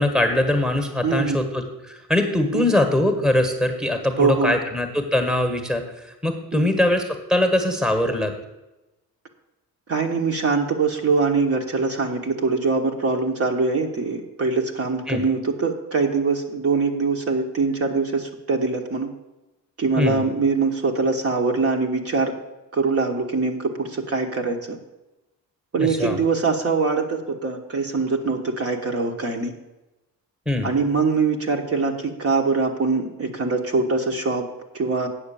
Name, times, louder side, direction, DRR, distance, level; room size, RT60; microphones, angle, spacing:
voice 1, 0.0-8.3 15.1-15.2 20.0-20.2 25.8-26.2 30.4-30.7, left 1 dB, ahead, 4 dB, 1.3 m, -22 dB
voice 2, 1.0-1.4 2.5-2.6 4.2-4.6 6.5-6.7 9.9-19.1 19.8-22.3 22.7-24.8 25.7-29.5 30.6-34.5 34.7-35.1, right 4 dB, 40° right, 2 dB, 1.2 m, -23 dB
8.8 x 6.6 x 6.9 m, 1.0 s
cardioid pair, 115°, 36 cm